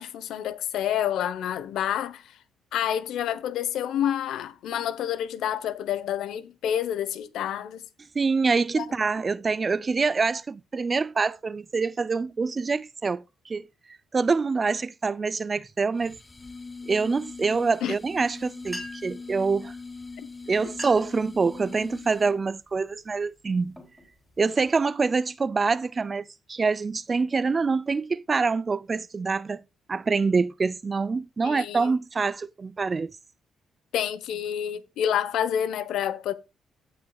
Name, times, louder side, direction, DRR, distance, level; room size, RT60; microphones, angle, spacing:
voice 1, 0.0-2.4 2.7-7.8 8.8-8.9 17.8-18.0 20.2-20.3 31.4-31.9 33.9-36.3, left 10 dB, 80° left, 1.0 m, -28 dB
voice 2, 8.2-13.7 14.1-16.2 16.9-19.7 20.5-23.8 24.4-29.6 29.9-33.2, right 4 dB, 35° right, 0.5 m, -25 dB
sound 1, 16.0-22.5, left 4 dB, 20° left, 0.8 m, -41 dB
sound 2, 18.6-19.2 20.1-20.3 20.6-21.2 21.7-22.1 22.7-22.9 23.5-24.7, left 1 dB, 5° left, 3.4 m, -42 dB
16.5 x 5.7 x 2.4 m
cardioid pair, 90°, 0 cm